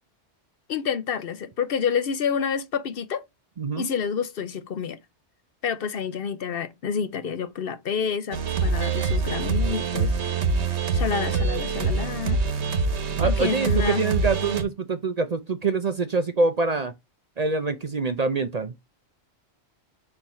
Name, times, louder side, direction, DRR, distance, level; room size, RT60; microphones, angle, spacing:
voice 1, 0.7-3.2 3.8-5.0 5.6-10.1 10.7-12.4 13.2-14.0, left 7 dB, 60° left, 0.8 m, -28 dB
voice 2, 3.6-3.9 13.2-16.9 17.4-18.7, right 4 dB, 45° right, 0.6 m, -25 dB
sound 1, 8.3-14.6, right 4 dB, 80° right, 1.4 m, -25 dB
5.3 x 4.5 x 4.3 m
omnidirectional pair, 1.1 m